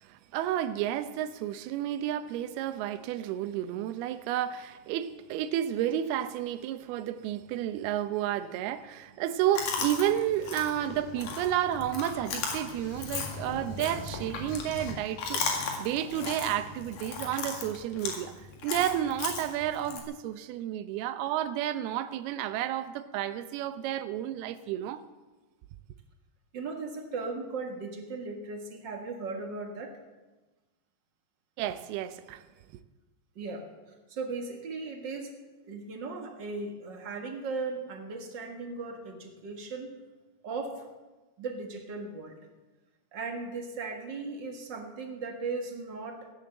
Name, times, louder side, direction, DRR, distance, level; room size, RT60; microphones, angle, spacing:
voice 1, 0.0-18.4 18.6-25.0 31.6-32.4, right 11 dB, 85° right, 2.7 m, -31 dB
Chewing mastication, 9.5-20.0, left 4 dB, 60° left, 3.2 m, -36 dB
voice 2, 26.5-30.0 33.3-33.7 34.1-35.4 35.7-40.0 40.4-40.9 41.4-42.4 43.1-46.3, right 3 dB, 45° right, 1.4 m, -37 dB
15.5 x 10.5 x 7.9 m
omnidirectional pair, 4.5 m